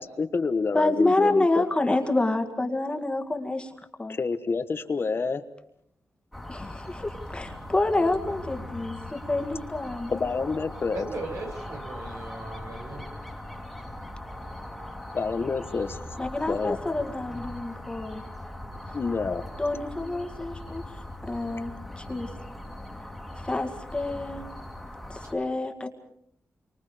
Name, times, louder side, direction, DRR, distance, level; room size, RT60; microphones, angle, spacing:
voice 1, 0.0-1.7 4.1-5.4 10.1-11.0 15.1-16.0 16.5-16.8 18.9-19.4, left 4 dB, 45° left, 10 dB, 1.3 m, -28 dB
voice 2, 0.7-3.7 4.0-4.2 6.5-10.5 16.2-18.2 18.8-19.0 19.6-20.8 21.2-22.3 23.4-24.4 25.1-25.9, left 2 dB, 20° left, 5 dB, 2.0 m, -28 dB
sound 1, 6.3-25.3, left 1 dB, ahead, 2.5 m, -40 dB
voice 3, 10.9-13.0, right 2 dB, 75° right, 1 dB, 7.5 m, -37 dB
30.0 x 24.5 x 5.1 m, 0.70 s
wide cardioid pair, 130°, 6 cm